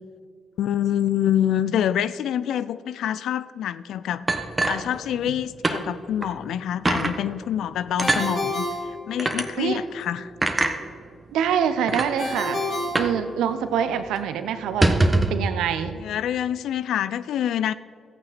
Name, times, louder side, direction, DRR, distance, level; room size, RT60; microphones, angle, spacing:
voice 1, 0.6-4.3 4.7-8.7 9.1-10.3 16.0-17.7, left 10 dB, 75° left, 16 dB, 0.3 m, -26 dB
sound 1, 4.3-5.4 5.6-5.8 6.2-6.3 6.8-7.1 8.0-8.3 9.2-9.4 10.4-10.7 11.5-11.6 11.9-12.1 12.9-13.2 13.5-13.6 13.9-14.1 14.6-15.4, right 2 dB, 25° right, 1.2 m, -22 dB
Ringtone, 8.0-9.7 12.2-13.9, left 1 dB, 60° left, 2.4 m, -30 dB
voice 2, 11.3-12.6 12.9-16.0, right 8 dB, 80° right, 11 dB, 0.7 m, -25 dB
14.0 x 9.0 x 4.2 m, 2.2 s
hypercardioid pair, 45°, 0 cm